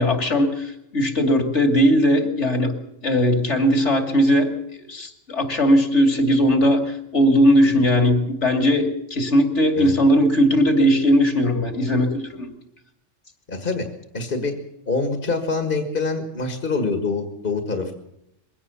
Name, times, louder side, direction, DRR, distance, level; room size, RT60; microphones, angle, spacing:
voice 1, 0.0-2.8 3.0-12.5, equal, 65° left, 6 dB, 2.9 m, -19 dB
voice 2, 13.5-13.9 14.1-14.6 14.9-17.9, left 3 dB, 45° left, 6 dB, 2.0 m, -25 dB
22.0 x 17.0 x 7.1 m, 0.81 s
omnidirectional pair, 1.3 m